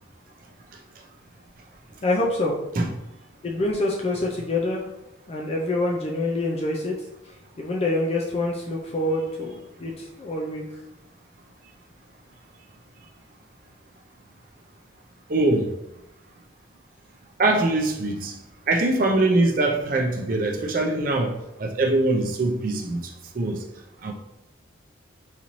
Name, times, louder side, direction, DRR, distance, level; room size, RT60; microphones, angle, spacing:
voice 1, 2.0-2.5 3.4-4.8 5.3-6.9 7.6-10.6, left 2 dB, 30° left, -1 dB, 0.3 m, -26 dB
voice 2, 15.3-15.7 17.4-18.4 18.7-23.0 23.3-23.6 24.0-24.1, right 2 dB, 45° right, 1 dB, 0.5 m, -22 dB
4.1 x 2.6 x 3.0 m, 0.90 s
head